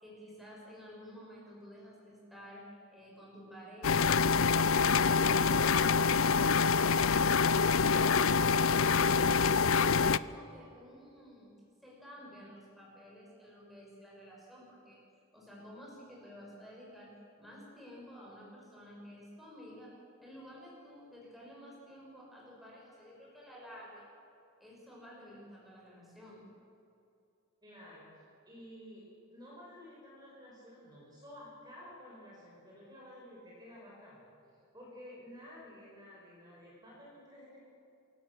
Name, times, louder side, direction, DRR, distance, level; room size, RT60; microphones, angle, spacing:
voice 1, 0.0-9.4 9.9-11.5 11.8-15.0 15.3-19.9 20.2-24.1 24.6-26.5, equal, ahead, -5 dB, 6.6 m, -52 dB
sound 1, 3.8-10.2, left 5 dB, 65° left, 0.5 m, -26 dB
voice 2, 27.6-34.3 34.7-37.7, left 1 dB, 20° right, -5 dB, 5.8 m, -52 dB
27.0 x 17.5 x 7.4 m, 2.6 s
head